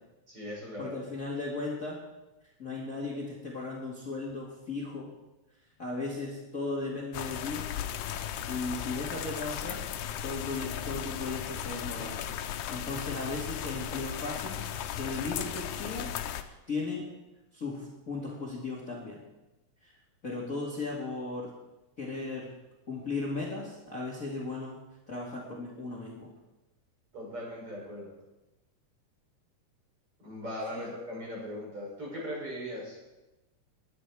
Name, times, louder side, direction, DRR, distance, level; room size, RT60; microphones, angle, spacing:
voice 1, 0.3-1.0 27.1-28.1 30.2-33.0, equal, 45° right, -4 dB, 7.1 m, -39 dB
voice 2, 0.8-2.0 2.6-5.1 5.8-7.7 8.4-9.9 10.2-12.2 12.7-17.1 17.5-19.2 19.8-20.0 20.2-21.5 22.0-22.5 22.9-24.8 25.1-26.3 30.7-30.9, left 3 dB, 30° left, -3 dB, 2.3 m, -36 dB
sound 1, 7.1-16.4, left 10 dB, 85° left, 2.2 m, -36 dB
22.0 x 10.0 x 4.8 m, 1.0 s
omnidirectional pair, 3.4 m